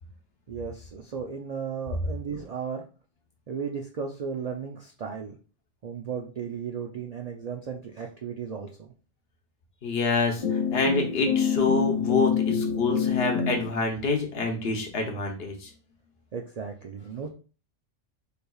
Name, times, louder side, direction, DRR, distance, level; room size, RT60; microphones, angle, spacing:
voice 1, 0.5-2.8 3.5-5.4 5.8-8.9 16.3-17.3, right 6 dB, 70° right, 3 dB, 0.3 m, -35 dB
voice 2, 9.8-15.7, left 3 dB, 55° left, 3 dB, 1.0 m, -27 dB
sound 1, 10.4-13.7, left 7 dB, 30° left, 0.9 m, -26 dB
4.5 x 3.3 x 2.3 m, 0.36 s
omnidirectional pair, 1.3 m